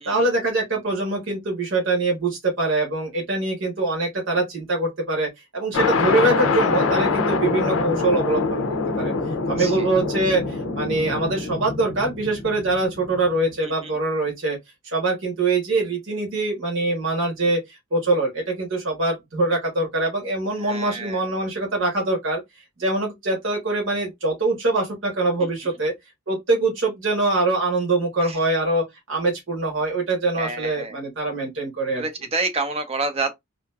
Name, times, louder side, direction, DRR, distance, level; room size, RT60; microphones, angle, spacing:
voice 1, 0.0-8.6 9.0-9.1 9.5-14.6 14.8-22.4 22.8-25.9 26.3-32.0, right 2 dB, 60° right, 1.2 m, -23 dB
sound 1, 5.7-13.3, left 4 dB, 70° left, 0.5 m, -24 dB
voice 2, 20.6-21.2 25.4-25.5 28.2-28.4 30.4-31.0 31.9-33.3, right 3 dB, 30° right, 0.6 m, -28 dB
2.8 x 2.5 x 2.3 m
head